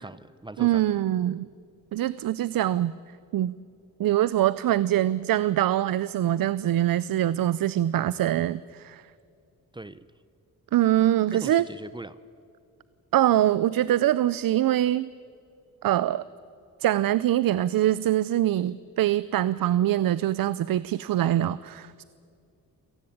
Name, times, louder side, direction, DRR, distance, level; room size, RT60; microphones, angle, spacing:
voice 1, 0.0-0.9 9.7-10.0 11.3-12.2, right 2 dB, 15° right, 16 dB, 0.7 m, -40 dB
voice 2, 0.6-1.5 1.9-2.9 3.3-3.6 4.0-9.0 10.7-11.6 13.1-15.1 15.8-16.2 16.8-22.0, right 12 dB, 75° right, 17 dB, 0.6 m, -24 dB
28.0 x 18.0 x 8.7 m, 2.4 s
cardioid pair, 100°, 34 cm